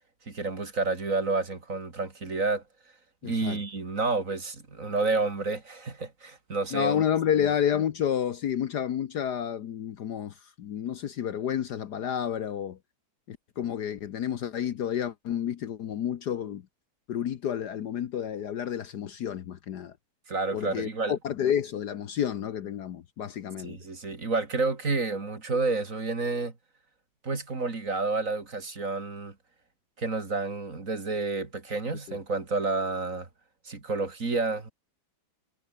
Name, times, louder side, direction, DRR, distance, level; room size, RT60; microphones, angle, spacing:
voice 1, 0.3-2.6 3.2-7.0 7.4-7.5 20.3-21.1 23.6-26.5 27.2-29.3 30.0-33.3 33.6-34.7, right 3 dB, 40° right, 3.1 m, -30 dB
voice 2, 3.2-3.6 6.7-12.8 13.3-16.6 17.1-19.9 20.5-23.8 32.1-32.2, left 9 dB, 60° left, 1.4 m, -30 dB
omnidirectional pair, 2.1 m